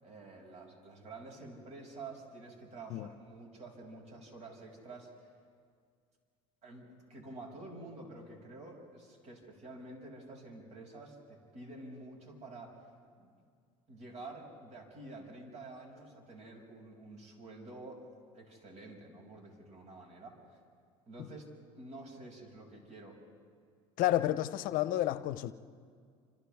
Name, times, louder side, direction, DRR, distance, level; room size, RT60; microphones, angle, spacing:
voice 1, 0.0-5.3 6.6-12.7 13.2-13.3 13.9-20.6 21.1-21.5 21.7-23.2, right 2 dB, 45° right, 6.5 m, -49 dB
voice 2, 24.0-25.5, left 14 dB, 65° left, 0.7 m, -30 dB
29.5 x 27.0 x 3.6 m
supercardioid pair, 90°, 16 cm